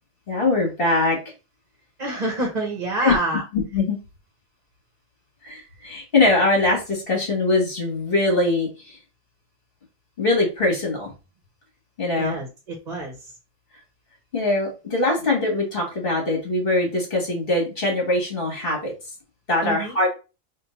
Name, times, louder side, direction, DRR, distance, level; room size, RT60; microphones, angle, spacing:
voice 1, 0.3-1.2 3.0-3.2 3.5-4.0 5.4-9.0 10.2-11.1 12.0-12.4 14.3-18.9 19.5-20.1, left 2 dB, 50° left, 0 dB, 2.3 m, -22 dB
voice 2, 2.0-3.4 12.2-13.3 19.6-20.0, right 2 dB, 40° right, 0 dB, 1.0 m, -27 dB
4.4 x 2.6 x 4.0 m, 0.30 s
omnidirectional pair, 1.2 m